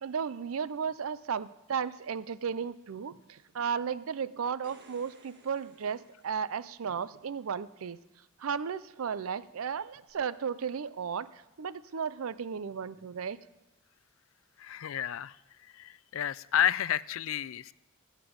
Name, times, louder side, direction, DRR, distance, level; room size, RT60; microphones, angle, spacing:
voice 1, 0.0-8.0 8.4-13.4, right 6 dB, 75° right, 17 dB, 0.5 m, -34 dB
sound 1, 4.4-7.0 10.1-10.2, right 3 dB, 50° right, 1.5 m, -59 dB
voice 2, 14.6-15.4 15.7-17.7, left 10 dB, 65° left, 19 dB, 0.4 m, -30 dB
20.5 x 9.1 x 5.2 m, 0.96 s
head